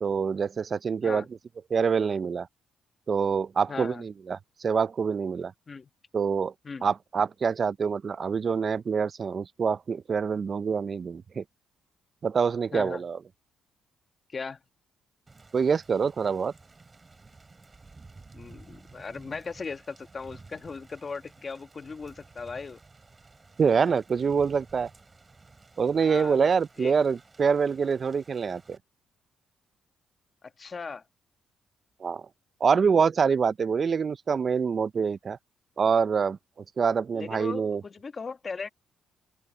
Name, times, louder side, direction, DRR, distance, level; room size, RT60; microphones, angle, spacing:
voice 1, 0.0-1.2 1.7-2.5 3.1-5.5 6.1-6.5 6.8-11.4 12.2-13.2 15.5-16.5 23.6-24.9 25.8-28.8 32.0-32.2 32.6-35.4 35.8-37.8, right 6 dB, 45° right, 0.5 m, -26 dB
voice 2, 3.7-4.0 5.7-5.9 6.6-6.9 12.7-13.0 14.3-14.6 18.3-22.8 26.0-26.4 26.8-26.9 30.4-31.0 37.1-38.7, left 4 dB, 35° left, 1.3 m, -38 dB
Thunder / Rain, 15.3-28.8, right 3 dB, 25° right, 3.9 m, -53 dB
open air
cardioid pair, 90°, 0 cm